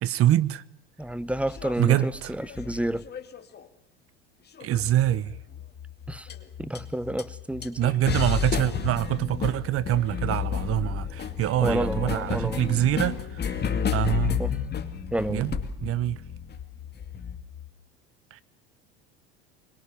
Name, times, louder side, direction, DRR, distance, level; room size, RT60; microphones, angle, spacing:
voice 1, 0.0-0.6 1.8-2.3 4.6-5.4 7.8-13.5 13.9-14.4 15.3-16.2 18.3-18.4, right 13 dB, 45° right, 1.1 m, -25 dB
voice 2, 1.0-3.0 6.1-6.3 6.6-7.9 11.6-12.6 14.4-14.5 15.1-15.4, right 1 dB, 5° right, 0.9 m, -30 dB
sound 1, 1.1-3.7 4.6-5.1 6.3-6.4 6.8-6.9 7.2-7.3 7.6-17.4, left 7 dB, 30° left, 2.4 m, -31 dB
sound 2, 4.7-17.7, left 10 dB, 55° left, 2.5 m, -44 dB
sound 3, 9.5-15.9, right 6 dB, 80° right, 3.8 m, -50 dB
25.5 x 22.0 x 7.0 m
hypercardioid pair, 85°, 32 cm